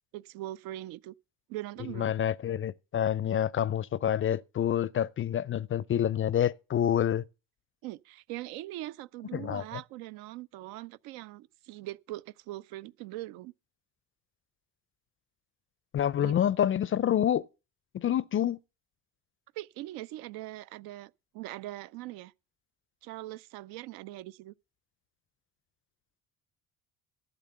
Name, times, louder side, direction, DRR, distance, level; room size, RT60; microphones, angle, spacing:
voice 1, 0.1-1.1 1.5-2.1 7.8-13.5 16.2-16.3 19.6-22.3 23.0-24.5, right 16 dB, 70° right, 0.5 m, -41 dB
voice 2, 2.0-7.2 9.3-9.8 15.9-17.5 17.9-18.6, left 10 dB, 35° left, 0.5 m, -27 dB
12.0 x 6.8 x 6.7 m
hypercardioid pair, 60°, 39 cm